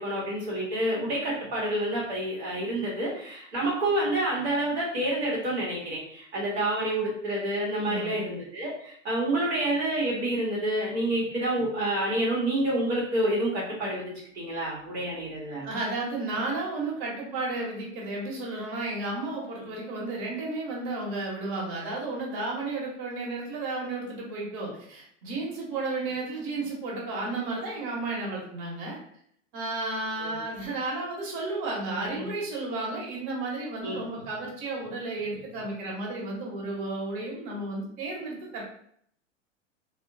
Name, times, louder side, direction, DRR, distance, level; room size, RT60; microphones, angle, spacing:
voice 1, 0.0-15.7 19.6-19.7 30.2-30.4 31.9-32.3 33.8-34.0, right 1 dB, 60° right, -5 dB, 1.0 m, -28 dB
voice 2, 7.8-8.3 15.6-29.0 29.5-38.6, right 2 dB, 40° right, -3 dB, 1.2 m, -33 dB
3.4 x 2.1 x 2.6 m, 0.65 s
figure-of-eight pair, 95°, 37 cm